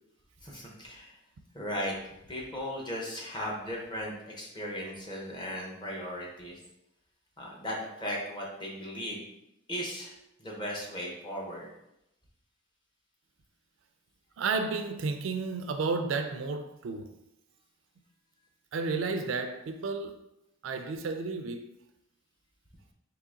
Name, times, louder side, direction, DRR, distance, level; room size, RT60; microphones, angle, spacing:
voice 1, 0.4-1.2 1.5-6.6 7.4-9.2 9.7-10.1 10.4-11.7, equal, 20° left, 0.9 m, -37 dB
voice 2, 14.4-17.1 18.7-20.2 20.6-21.7, right 4 dB, 65° right, 0.4 m, -32 dB
3.8 x 2.9 x 3.7 m
head